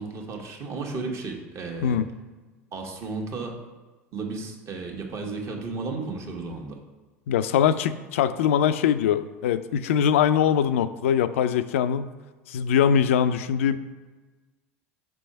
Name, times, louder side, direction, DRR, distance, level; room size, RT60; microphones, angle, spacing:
voice 1, 0.0-2.0 2.7-3.6 4.1-6.8, right 3 dB, 40° right, 1 dB, 1.2 m, -33 dB
voice 2, 7.3-12.1 12.5-13.8, left 8 dB, 75° left, 12 dB, 0.3 m, -22 dB
5.5 x 3.4 x 5.4 m, 1.3 s
hypercardioid pair, 80°, 7 cm